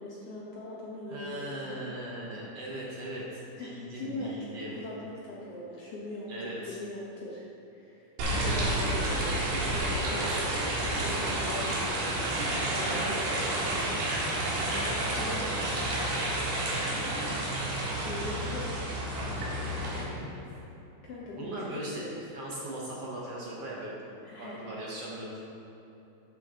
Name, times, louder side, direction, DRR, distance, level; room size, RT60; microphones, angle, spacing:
voice 1, 0.0-1.8 3.6-7.4 7.7-13.6 15.1-15.5 18.0-18.7 20.3-20.5 21.0-22.2 24.2-24.6, left 2 dB, 70° left, -6 dB, 1.4 m, -41 dB
voice 2, 1.1-4.7 6.3-6.8 10.0-10.4 12.8-13.2 19.2-20.4 21.4-22.0 22.3-24.0 24.4-25.4, right 1 dB, 70° right, -5 dB, 1.5 m, -39 dB
sound 1, 8.2-20.0, right 1 dB, 85° right, 3.7 m, -30 dB
13.0 x 6.3 x 3.8 m, 3.0 s
omnidirectional pair, 4.4 m